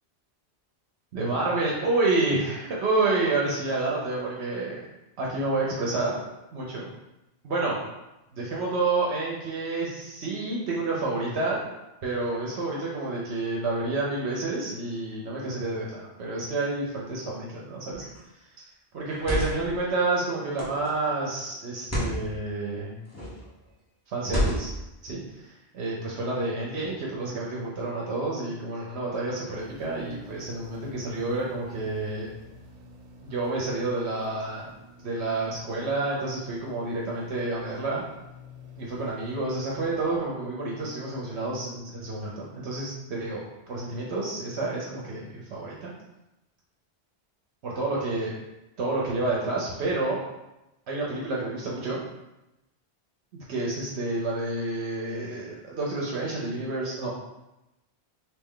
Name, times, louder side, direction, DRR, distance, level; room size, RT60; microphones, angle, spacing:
voice 1, 1.1-4.8 5.2-6.1 6.5-6.9 7.4-7.8 8.3-11.6 12.0-18.1 18.9-22.9 24.1-24.7 25.0-32.3 33.2-34.7 35.0-38.0 38.8-45.9 47.6-48.3 48.8-50.2 50.9-52.0 53.3-57.2, right 2 dB, 75° right, -3 dB, 0.9 m, -29 dB
sound 1, 17.9-18.2 19.0-19.7 20.6-20.9 21.8-22.2 23.1-23.4 24.2-24.9, equal, 15° left, 1.0 m, -29 dB
sound 2, 29.6-40.2, left 1 dB, 55° right, 0.6 m, -50 dB
3.3 x 2.8 x 3.6 m, 0.96 s
omnidirectional pair, 1.1 m